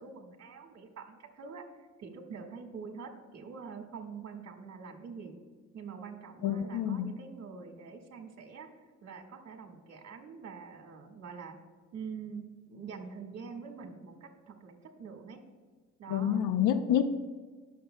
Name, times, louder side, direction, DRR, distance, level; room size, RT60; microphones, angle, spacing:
voice 1, 0.0-1.6 2.0-5.4 5.7-8.7 9.0-11.6 11.9-15.4 16.0-16.4, right 5 dB, 55° right, 3 dB, 1.6 m, -45 dB
voice 2, 6.4-7.1 16.1-17.0, left 10 dB, 85° left, 10 dB, 0.7 m, -28 dB
19.5 x 6.8 x 2.2 m, 1.4 s
cardioid pair, 90°, 30 cm